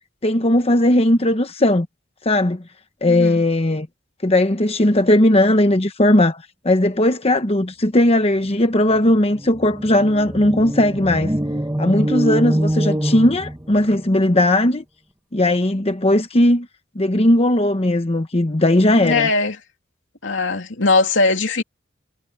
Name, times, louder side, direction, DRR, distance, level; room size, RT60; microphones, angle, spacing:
voice 1, 0.2-1.9 2.2-2.6 3.0-3.9 4.2-11.3 11.8-14.8 15.3-16.7 16.9-19.3, left 1 dB, 30° left, 1.1 m, -17 dB
voice 2, 3.1-3.4 19.0-19.6 20.2-21.6, left 3 dB, 70° left, 3.1 m, -19 dB
sound 1, 8.5-8.6 8.9-14.0, right 1 dB, 15° right, 1.3 m, -25 dB
head